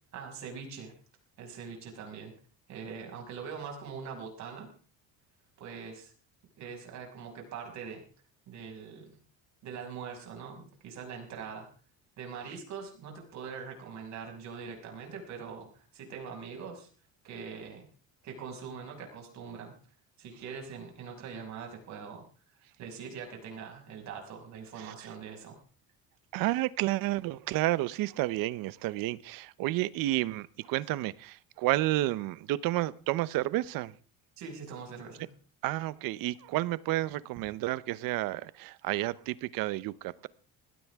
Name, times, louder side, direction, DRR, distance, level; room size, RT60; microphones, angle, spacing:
voice 1, 0.1-0.9 1.4-2.3 2.7-4.7 5.6-6.1 6.6-8.0 8.5-9.1 9.6-11.7 12.2-16.9 17.2-17.9 18.2-19.7 20.2-22.3 22.8-25.6 34.4-35.3, right 6 dB, 50° right, 6.2 m, -42 dB
voice 2, 26.3-33.9 35.6-40.3, right 17 dB, 65° right, 0.9 m, -31 dB
20.5 x 17.0 x 3.6 m
cardioid pair, 180°, 36 cm